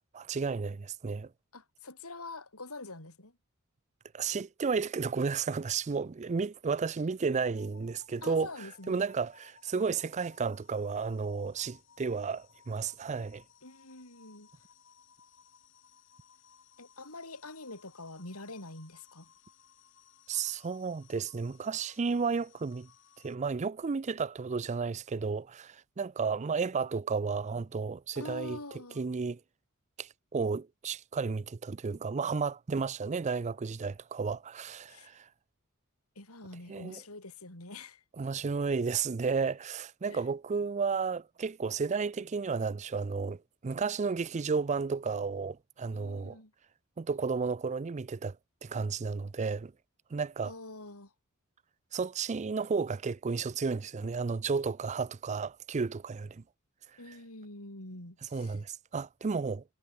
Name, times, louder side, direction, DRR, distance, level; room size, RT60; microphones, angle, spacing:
voice 1, 0.1-1.3 4.1-13.4 20.3-22.9 23.2-28.6 29.0-29.4 30.0-35.3 36.7-37.0 38.2-46.4 47.0-48.4 48.6-49.7 50.1-50.5 51.9-56.4 57.1-57.2 58.3-59.6, right 5 dB, 30° right, 0.4 m, -33 dB
voice 2, 1.5-3.4 8.2-9.0 13.6-14.5 16.8-19.3 28.2-29.0 34.9-35.1 36.2-38.0 40.1-40.2 45.9-46.5 50.4-51.1 57.0-58.6, left 2 dB, 85° left, 6.8 m, -45 dB
sound 1, 7.5-23.4, left 7 dB, 60° left, 7.5 m, -61 dB
head